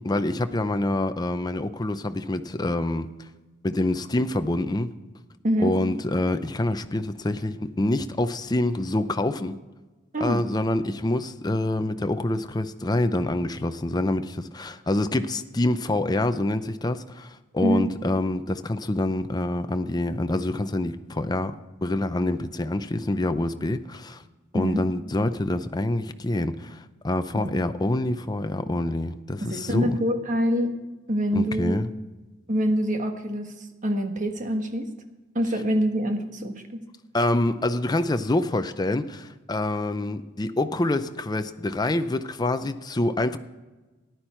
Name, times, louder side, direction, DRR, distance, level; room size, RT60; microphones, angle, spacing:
voice 1, 0.0-3.1 3.6-4.9 5.6-9.6 10.2-21.5 21.8-24.2 24.5-30.0 31.3-31.9 37.1-43.4, left 1 dB, 20° left, 10 dB, 0.6 m, -26 dB
voice 2, 5.4-5.7 10.1-10.5 17.6-17.9 24.5-24.8 27.3-27.5 29.4-30.7 31.1-31.8 32.5-33.5 33.8-34.9 35.3-36.8, equal, 40° right, 6 dB, 1.3 m, -25 dB
14.5 x 10.5 x 4.4 m, 1.2 s
head